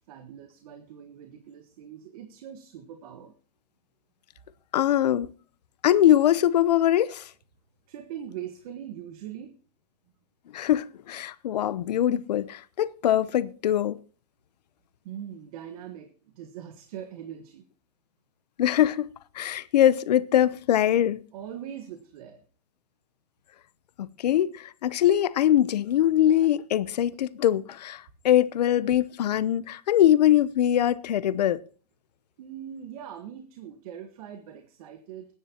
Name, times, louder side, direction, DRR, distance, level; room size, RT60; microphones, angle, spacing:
voice 1, 0.1-3.3 7.9-9.5 15.0-17.6 21.3-22.4 32.4-35.3, right 9 dB, 65° right, 1.5 m, -41 dB
voice 2, 4.7-5.3 5.8-7.3 10.5-14.0 18.6-21.2 24.0-31.6, left 11 dB, 85° left, 0.8 m, -22 dB
21.0 x 10.0 x 2.9 m
hypercardioid pair, 135°, 20 cm